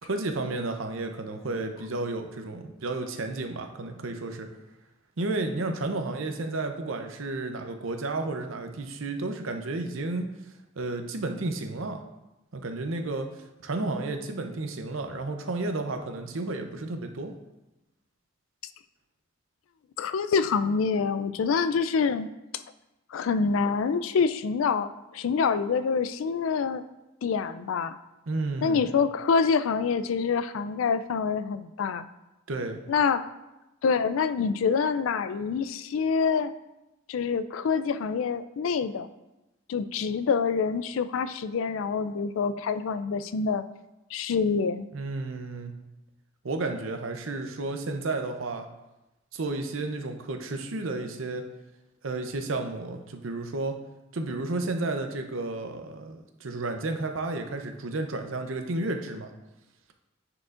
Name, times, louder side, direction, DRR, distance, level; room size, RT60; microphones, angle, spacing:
voice 1, 0.0-4.5 5.2-10.3 10.8-12.0 12.5-17.3 28.3-28.9 32.5-32.8 44.9-45.7 46.4-48.7 49.3-51.4 52.0-53.8 54.1-59.3, right 2 dB, 85° right, 5 dB, 0.7 m, -32 dB
voice 2, 20.0-22.6 23.1-26.8 27.2-28.0 28.6-32.1 32.9-33.2 33.8-36.5 37.1-39.1 39.7-43.6 44.1-44.9, left 5 dB, 85° left, 13 dB, 0.4 m, -26 dB
9.6 x 4.8 x 2.5 m, 0.98 s
head